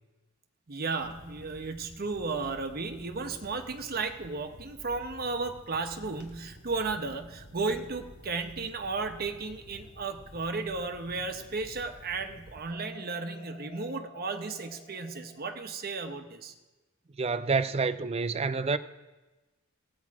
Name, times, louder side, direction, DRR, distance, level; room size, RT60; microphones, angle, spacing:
voice 1, 0.7-16.5, right 4 dB, 45° right, 0.9 m, -34 dB
sound 1, 1.0-12.7, equal, 60° left, 1.9 m, -52 dB
sound 2, 9.8-11.6 12.7-15.5, left 3 dB, 30° left, 1.6 m, -53 dB
voice 2, 17.2-18.8, right 4 dB, 30° right, 0.4 m, -28 dB
15.5 x 8.6 x 4.7 m
head